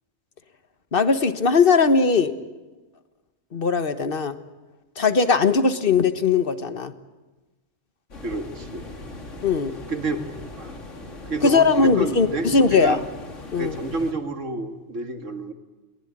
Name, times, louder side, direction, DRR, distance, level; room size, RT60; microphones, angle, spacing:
voice 1, 0.9-2.3 3.5-4.4 5.0-6.9 9.4-9.7 11.4-13.0 13.5-13.8, left 4 dB, 45° left, 10 dB, 1.4 m, -19 dB
sound 1, 8.1-14.1, left 2 dB, 70° left, 2.9 m, -40 dB
voice 2, 8.2-8.9 9.9-10.2 10.6-10.8 11.3-13.0 13.6-15.5, right 2 dB, 70° right, 5 dB, 2.4 m, -29 dB
21.5 x 20.0 x 9.9 m, 1.2 s
omnidirectional pair, 1.3 m